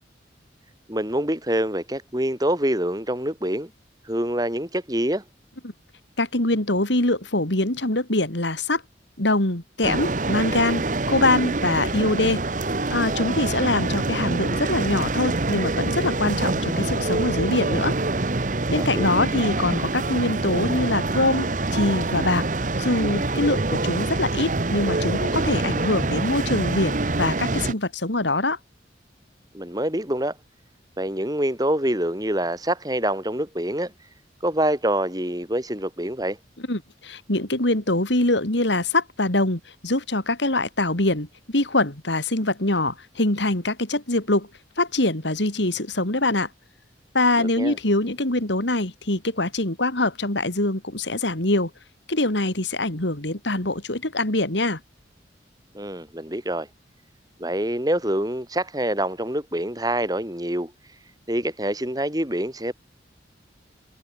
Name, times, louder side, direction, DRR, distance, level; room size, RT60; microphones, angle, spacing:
voice 1, 0.9-3.7 4.0-5.2 18.7-19.2 29.5-30.4 31.0-33.9 34.4-36.4 47.4-47.8 55.7-56.7 57.4-60.7 61.3-62.7, right 1 dB, 20° right, 4.1 m, -26 dB
voice 2, 6.2-8.8 9.2-12.4 12.9-18.0 18.7-22.4 22.8-28.6 36.7-44.5 44.8-46.5 47.1-51.7 52.1-54.8, left 2 dB, 75° left, 3.5 m, -24 dB
sound 1, 9.8-27.7, right 2 dB, 45° right, 1.1 m, -25 dB
head